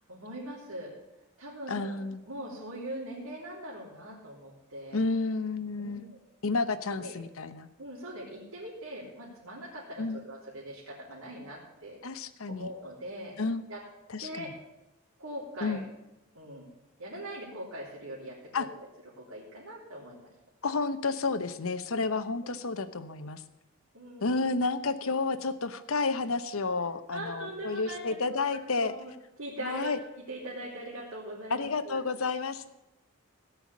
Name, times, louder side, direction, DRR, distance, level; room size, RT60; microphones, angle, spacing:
voice 1, 0.1-0.9 1.4-5.0 5.8-6.2 6.9-7.1 7.8-12.2 12.5-13.4 13.7-13.8 14.2-14.5 15.2-15.8 16.3-16.7 17.0-18.9 19.1-20.3 23.9-24.3 27.1-29.1 29.4-32.0, right 1 dB, 75° right, -6 dB, 3.5 m, -41 dB
voice 2, 1.7-2.2 4.9-6.1 6.4-7.7 10.0-10.2 12.0-12.7 13.4-13.6 14.1-14.5 15.6-15.8 18.5-18.7 20.6-23.4 24.2-28.9 29.6-30.0 31.5-32.7, left 3 dB, 75° left, 12 dB, 0.9 m, -31 dB
17.0 x 5.7 x 8.4 m, 0.92 s
head